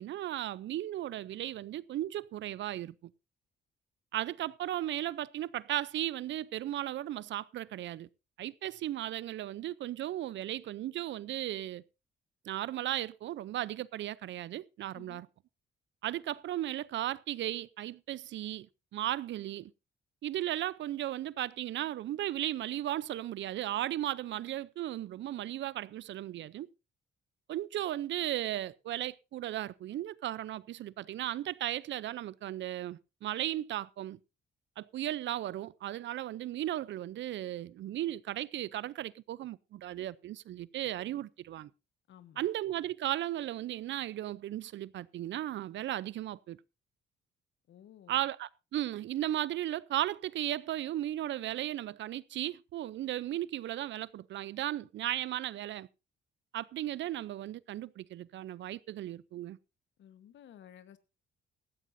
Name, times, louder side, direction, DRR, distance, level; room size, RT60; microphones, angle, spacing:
voice 1, 0.0-3.1 4.1-8.1 8.4-11.8 12.5-15.3 16.0-18.7 18.9-19.7 20.2-26.7 27.5-34.2 34.8-41.7 42.4-46.6 48.1-55.9 56.5-59.6, right 13 dB, 70° right, 0.6 m, -36 dB
voice 2, 42.1-42.5 47.7-48.2 60.0-61.0, left 10 dB, 70° left, 1.3 m, -54 dB
16.5 x 13.5 x 2.7 m
cardioid pair, 90°, 20 cm